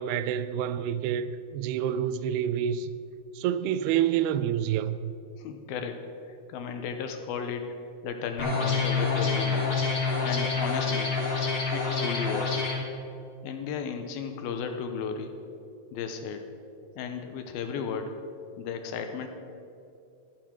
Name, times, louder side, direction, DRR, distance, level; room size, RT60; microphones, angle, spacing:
voice 1, 0.0-2.9 3.4-5.1, right 9 dB, 80° right, 2.6 m, -28 dB
voice 2, 5.4-6.0 6.3-7.7 8.0-9.7 10.2-11.1 11.7-12.7 13.4-15.4 15.9-16.5 17.0-18.2 18.6-19.3, left 6 dB, 75° left, 2.6 m, -34 dB
sound 1, 8.4-12.8, left 4 dB, 35° left, 3.4 m, -27 dB
14.0 x 10.5 x 6.2 m
omnidirectional pair, 4.7 m